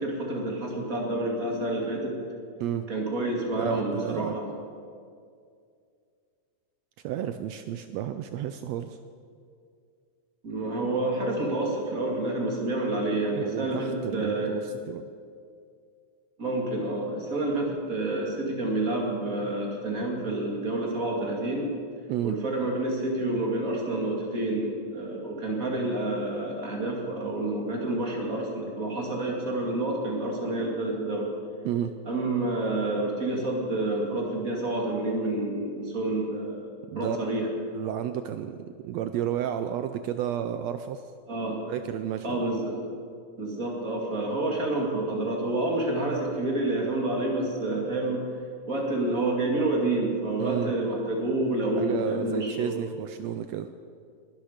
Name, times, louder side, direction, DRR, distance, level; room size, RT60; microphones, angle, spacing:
voice 1, 0.0-2.2 2.9-4.5 10.4-14.5 16.4-21.7 22.2-31.3 32.1-36.7 36.9-37.5 41.3-41.6 42.2-42.8 43.4-48.2 48.7-52.7, right 2 dB, 30° right, -1 dB, 2.4 m, -28 dB
voice 2, 3.5-4.5 7.0-9.0 13.4-15.0 22.1-22.4 31.6-31.9 36.9-41.1 41.7-42.4 50.4-50.7 51.8-53.7, right 10 dB, 85° right, 9 dB, 1.5 m, -32 dB
20.5 x 12.0 x 5.0 m, 2.3 s
omnidirectional pair, 3.6 m